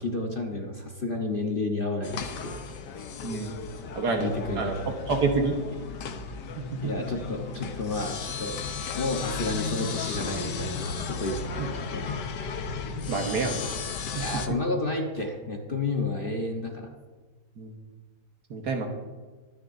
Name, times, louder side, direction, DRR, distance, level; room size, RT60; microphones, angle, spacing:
voice 1, 0.0-2.2 2.4-2.6 4.2-5.1 6.8-8.6 9.0-11.4 11.7-12.2 14.2-16.9, left 2 dB, 35° left, 1 dB, 1.2 m, -31 dB
sound 1, 2.0-14.5, left 5 dB, 70° left, 1.5 m, -35 dB
voice 2, 4.0-4.7 5.1-5.6 6.6-7.1 13.1-13.6 14.1-14.3 17.6-17.7 18.5-18.9, right 4 dB, 65° right, 3 dB, 1.8 m, -28 dB
23.0 x 10.0 x 2.7 m, 1.4 s
omnidirectional pair, 1.9 m